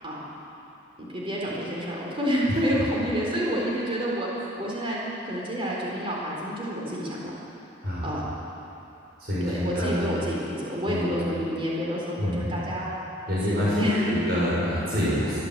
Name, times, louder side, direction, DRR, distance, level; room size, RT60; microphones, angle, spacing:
voice 1, 1.0-4.3 4.6-7.3 8.0-8.3 9.4-12.9 13.4-14.2, equal, 25° right, -4 dB, 4.0 m, -29 dB
voice 2, 9.2-10.0 10.9-11.1 12.2-12.6 13.2-15.4, equal, 50° right, -9 dB, 6.8 m, -27 dB
24.5 x 13.5 x 8.1 m, 2.9 s
head